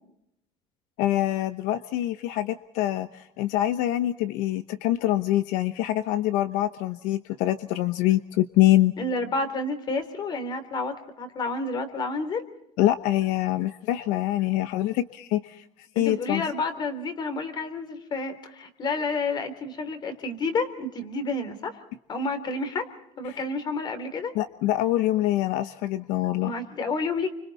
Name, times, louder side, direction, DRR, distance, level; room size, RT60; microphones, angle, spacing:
voice 1, 1.0-8.9 12.8-15.6 15.9-16.5 23.3-23.4 24.3-26.5, left 14 dB, 75° left, 11 dB, 1.0 m, -25 dB
voice 2, 9.0-12.5 15.9-21.8 22.1-22.9 23.2-24.3 26.4-27.3, left 3 dB, 30° left, 10 dB, 3.3 m, -30 dB
29.5 x 25.5 x 4.2 m, 0.77 s
cardioid pair, 160°, 14 cm